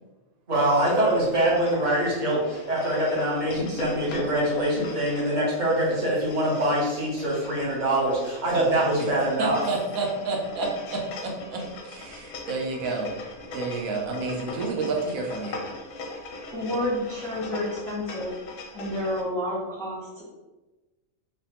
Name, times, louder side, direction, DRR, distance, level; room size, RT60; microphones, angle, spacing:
sound 1, 0.5-19.2, left 2 dB, 90° left, 1.0 m, -40 dB
voice 1, 0.5-9.6, right 1 dB, 40° right, -4 dB, 0.8 m, -24 dB
voice 2, 9.4-13.1 13.5-15.6, right 3 dB, 80° right, 0 dB, 1.1 m, -30 dB
voice 3, 16.5-18.4 18.7-20.2, left 1 dB, 5° left, -7 dB, 0.4 m, -30 dB
3.2 x 2.2 x 2.8 m, 1.1 s
omnidirectional pair, 1.4 m